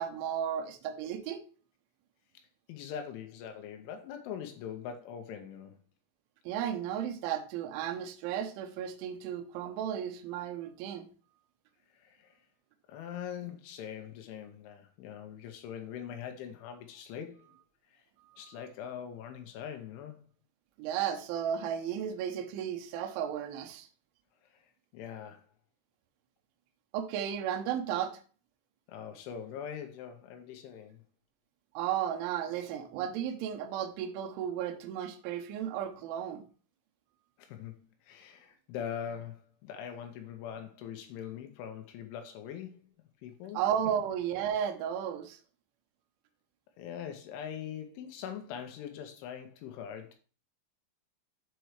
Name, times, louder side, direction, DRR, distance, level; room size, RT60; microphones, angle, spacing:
voice 1, 0.0-1.4 6.5-11.1 18.3-18.4 20.8-23.9 26.9-28.2 31.7-36.4 43.5-45.4, right 9 dB, 75° right, 3.1 m, -34 dB
voice 2, 2.7-5.8 11.9-12.4 12.9-17.5 17.9-18.0 18.4-20.2 24.5-24.7 24.9-25.5 28.9-31.0 37.4-37.7 38.0-42.9 43.2-43.6 46.8-50.2, left 8 dB, 80° left, 3.1 m, -42 dB
7.9 x 4.5 x 4.7 m
omnidirectional pair, 6.0 m